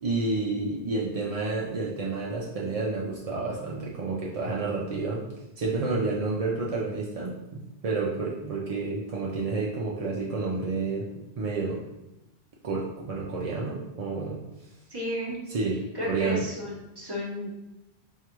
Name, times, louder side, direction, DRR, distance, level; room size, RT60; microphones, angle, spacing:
voice 1, 0.0-5.2 5.6-11.0 11.4-11.8 12.6-14.4 15.5-15.8 16.1-16.5, right 3 dB, 55° right, -4 dB, 0.4 m, -30 dB
voice 2, 14.9-15.4 15.9-17.5, equal, 25° right, -5 dB, 0.9 m, -32 dB
4.5 x 2.4 x 2.9 m, 0.93 s
omnidirectional pair, 1.1 m